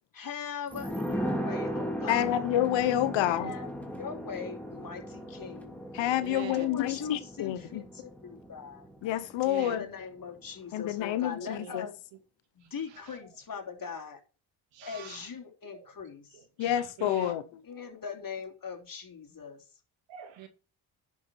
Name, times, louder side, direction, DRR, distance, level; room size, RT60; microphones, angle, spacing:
voice 1, 0.1-2.4 3.2-3.7 4.0-5.8 6.5-8.9 9.6-11.9 12.5-14.2 14.8-16.4 17.7-19.6, left 6 dB, 50° left, 3.3 m, -41 dB
sound 1, 0.7-10.0 10.3-10.4, equal, 5° left, 3.0 m, -37 dB
voice 2, 2.1-3.5 5.9-7.8 9.0-9.8 10.7-11.9 16.6-17.4, left 12 dB, 80° left, 1.1 m, -28 dB
voice 3, 3.2-3.6 6.2-6.7 9.4-9.9 11.4-11.9 12.6-13.4 13.8-14.0 14.7-15.3 15.7-15.9 16.3-17.5 20.1-20.5, right 10 dB, 85° right, 2.2 m, -45 dB
10.5 x 6.3 x 4.5 m
supercardioid pair, 55°, 44 cm